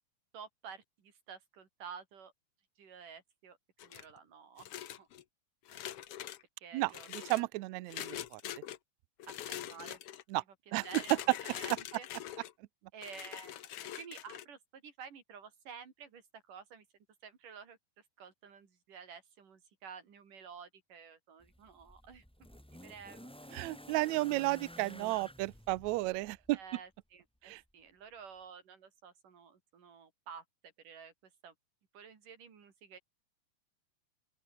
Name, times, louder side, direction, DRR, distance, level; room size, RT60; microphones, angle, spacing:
voice 1, 0.3-2.3 2.8-3.6 3.8-5.1 5.7-5.8 6.6-7.3 7.6-7.9 9.3-10.0 10.4-12.1 12.9-16.8 17.2-22.5 22.8-23.3 26.5-31.1 31.4-31.5 31.9-33.0, right 6 dB, 65° right, 5.1 m, -51 dB
sound 1, 3.8-4.2 4.6-5.2 5.7-6.4 6.9-7.4 7.9-8.8 9.2-10.2 10.8-12.5 13.0-14.5, left 11 dB, 65° left, 1.5 m, -43 dB
voice 2, 6.7-8.4 10.3-10.4 10.7-10.8 23.5-26.6 27.4-27.6, right 20 dB, 85° right, 1.6 m, -33 dB
sound 2, 21.4-26.6 27.7-27.8, equal, ahead, 2.2 m, -53 dB
open air
omnidirectional pair, 4.0 m